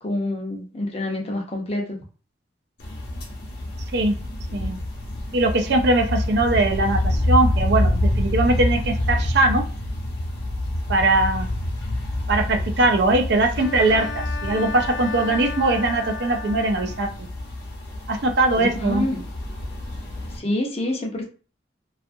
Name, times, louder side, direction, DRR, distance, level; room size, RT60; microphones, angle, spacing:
voice 1, 0.0-2.0 18.6-19.2 20.4-21.2, left 1 dB, 35° left, 0 dB, 0.6 m, -27 dB
sound 1, 2.8-20.4, left 1 dB, 60° left, 0.9 m, -27 dB
voice 2, 5.3-9.6 10.9-11.5 12.3-17.3 18.1-19.0, right 2 dB, 65° right, 4 dB, 0.4 m, -21 dB
Bowed string instrument, 13.5-17.3, left 4 dB, 80° left, 0.4 m, -34 dB
2.6 x 2.3 x 2.5 m, 0.37 s
head